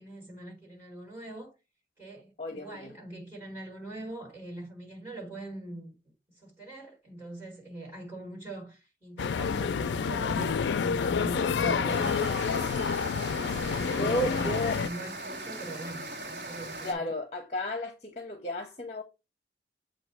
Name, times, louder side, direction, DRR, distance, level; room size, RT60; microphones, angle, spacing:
voice 1, 0.0-1.5 2.0-6.0 6.3-12.5 13.4-17.1, right 1 dB, 10° right, 4.2 m, -41 dB
voice 2, 2.4-2.9 13.9-14.8 16.8-19.0, left 1 dB, 35° left, 0.8 m, -33 dB
sound 1, 9.2-14.9, left 6 dB, 80° left, 0.4 m, -28 dB
sound 2, 11.9-16.9, right 2 dB, 50° right, 1.5 m, -39 dB
7.8 x 2.7 x 4.5 m
head